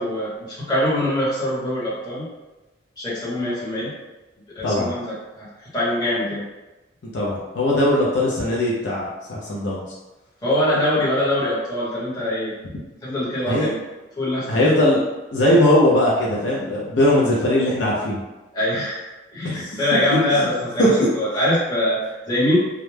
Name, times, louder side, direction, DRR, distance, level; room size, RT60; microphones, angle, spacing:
voice 1, 0.0-2.3 3.0-3.9 4.6-5.5 5.7-6.4 10.4-12.5 13.0-13.8 14.2-14.7 18.5-22.6, left 1 dB, 20° left, -9 dB, 1.0 m, -23 dB
voice 2, 7.0-9.8 13.5-13.7 14.5-15.0 15.3-18.2 19.4-19.7 20.1-20.5 20.8-20.9, left 1 dB, 65° left, -5 dB, 0.5 m, -19 dB
2.3 x 2.1 x 3.2 m, 1.1 s
head